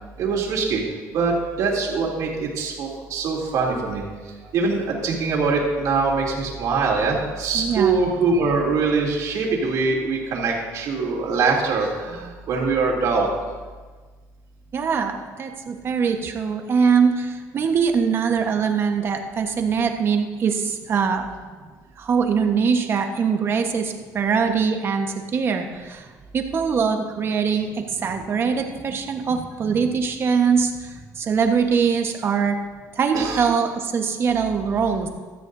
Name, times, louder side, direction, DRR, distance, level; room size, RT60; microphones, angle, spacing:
voice 1, 0.2-0.8 1.1-4.0 4.5-13.3 33.1-33.5, right 4 dB, 65° right, -1 dB, 2.9 m, -23 dB
voice 2, 7.5-8.1 14.7-21.2 22.0-26.1 26.3-32.6 32.9-35.1, right 6 dB, 40° right, 4 dB, 1.2 m, -22 dB
15.5 x 13.0 x 2.7 m, 1.4 s
cardioid pair, 140°, 6 cm